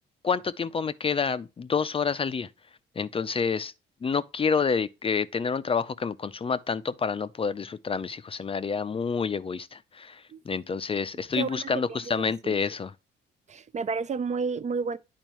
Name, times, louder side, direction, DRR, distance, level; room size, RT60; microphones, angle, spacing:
voice 1, 0.2-2.5 3.0-3.7 4.0-12.9, left 5 dB, 30° left, 0.4 m, -28 dB
voice 2, 11.4-12.6 13.5-15.0, right 5 dB, 35° right, 0.4 m, -31 dB
9.1 x 4.4 x 3.0 m
cardioid pair, 90°, 20 cm